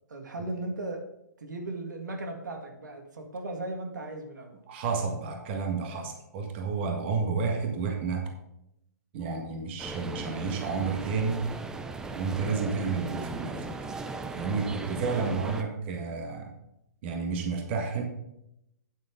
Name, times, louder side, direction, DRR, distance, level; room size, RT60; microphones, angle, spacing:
voice 1, 0.1-1.0 1.4-4.6 14.8-15.0, right 2 dB, 90° right, 4 dB, 1.9 m, -37 dB
voice 2, 4.7-8.3 9.1-11.4 12.1-13.7 14.3-16.5 17.0-18.0, right 4 dB, 40° right, 3 dB, 1.6 m, -31 dB
sound 1, 9.8-15.6, right 3 dB, 5° right, 0.4 m, -37 dB
9.4 x 8.7 x 3.8 m, 0.82 s
hypercardioid pair, 155°, 10 cm